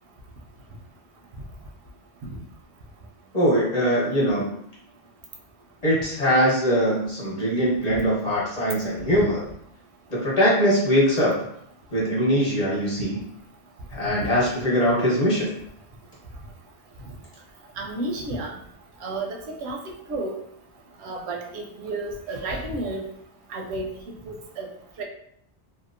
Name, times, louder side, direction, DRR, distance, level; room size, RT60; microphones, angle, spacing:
voice 1, 3.3-4.5 5.8-9.4 10.1-11.4 11.9-13.2 13.9-15.5, equal, 40° left, -7 dB, 1.0 m, -22 dB
voice 2, 17.8-18.5 19.0-19.8 20.1-20.4 21.0-23.0 23.5-23.9 24.3-24.7 25.0-25.1, right 2 dB, 85° right, 1 dB, 0.8 m, -31 dB
2.7 x 2.0 x 2.5 m, 0.69 s
omnidirectional pair, 1.1 m